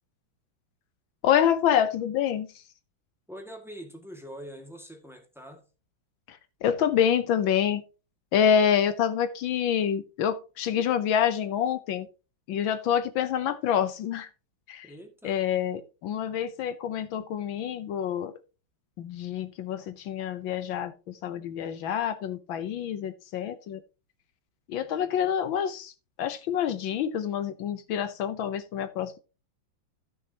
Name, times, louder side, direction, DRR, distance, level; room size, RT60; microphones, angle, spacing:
voice 1, 1.2-2.6 6.3-7.8 8.3-12.1 12.5-14.3 14.7-14.9 15.2-18.3 19.0-23.8 24.7-25.9 26.2-29.2, left 9 dB, 75° left, 1.5 m, -27 dB
voice 2, 3.3-5.7 14.8-15.4, equal, ahead, 1.7 m, -44 dB
15.0 x 6.4 x 2.8 m
omnidirectional pair, 2.2 m